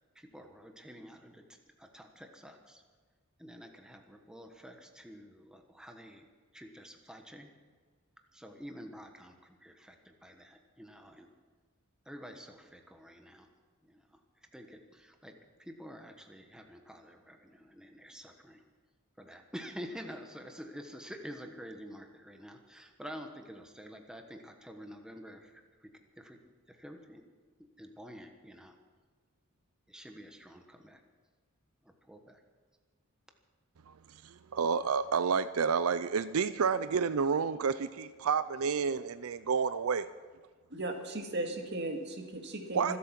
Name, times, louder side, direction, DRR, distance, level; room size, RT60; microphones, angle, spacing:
voice 1, 0.1-1.4 1.8-2.8 3.4-6.3 6.5-7.5 8.3-11.3 12.0-13.5 13.8-14.2 14.5-18.6 19.2-25.9 26.2-26.4 26.7-27.2 27.6-28.8 29.9-31.0 31.8-32.4, equal, 5° right, 4 dB, 1.3 m, -48 dB
voice 2, 34.2-40.1 42.7-43.0, right 6 dB, 85° right, 14 dB, 0.5 m, -30 dB
voice 3, 40.7-43.0, right 1 dB, 55° right, 4 dB, 2.1 m, -37 dB
25.5 x 8.5 x 5.9 m, 1.5 s
head